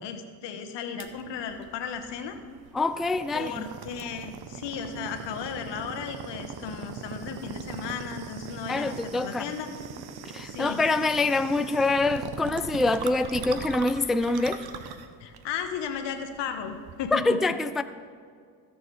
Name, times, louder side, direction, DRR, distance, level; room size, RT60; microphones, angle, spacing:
voice 1, 0.0-2.3 3.3-9.7 10.4-10.8 15.2-17.4, left 7 dB, 80° left, 7 dB, 1.2 m, -35 dB
sound 1, 1.0-17.3, right 7 dB, 65° right, 0.9 m, -41 dB
voice 2, 2.7-3.6 8.7-9.5 10.2-14.6 17.1-17.8, left 3 dB, ahead, 11 dB, 0.3 m, -25 dB
16.0 x 7.0 x 3.3 m, 2.1 s
supercardioid pair, 70°, 42 cm